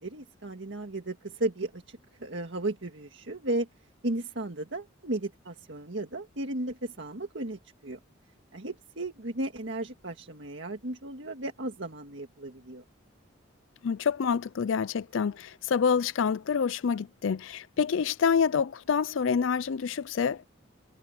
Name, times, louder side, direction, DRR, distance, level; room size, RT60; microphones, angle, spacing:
voice 1, 0.0-3.7 4.0-8.0 8.5-12.8, right 2 dB, 65° right, 1.8 m, -35 dB
voice 2, 13.8-20.5, left 6 dB, 80° left, 0.4 m, -27 dB
head